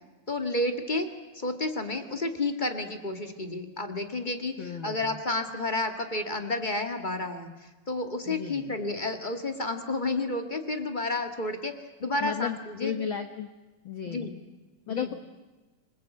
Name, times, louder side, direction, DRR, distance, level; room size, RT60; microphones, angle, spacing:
voice 1, 0.3-1.1 1.3-4.5 4.8-11.7 12.0-12.9 14.1-14.3 14.9-15.1, left 2 dB, 25° left, 6 dB, 1.2 m, -31 dB
voice 2, 4.6-5.2 8.3-8.8 12.2-13.5 13.8-14.3 14.9-15.1, left 8 dB, 55° left, 7 dB, 1.5 m, -34 dB
27.0 x 20.5 x 8.3 m, 1.2 s
omnidirectional pair, 3.5 m